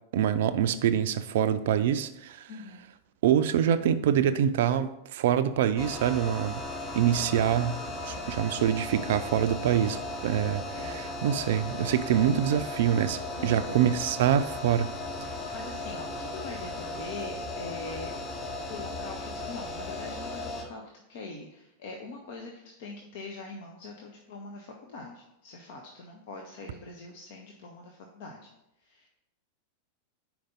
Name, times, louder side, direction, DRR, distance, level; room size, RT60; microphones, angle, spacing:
voice 1, 0.1-2.5 3.2-6.6 7.0-14.9, right 9 dB, 55° right, 13 dB, 0.4 m, -25 dB
voice 2, 2.5-2.9 10.7-11.0 12.2-12.3 13.4-13.9 15.3-18.3 18.7-28.5 28.8-29.1, left 3 dB, 50° left, 1 dB, 0.8 m, -43 dB
sound 1, 5.8-20.6, left 2 dB, 30° left, 1.4 m, -36 dB
5.1 x 4.6 x 5.4 m, 0.85 s
figure-of-eight pair, 90°, 0 cm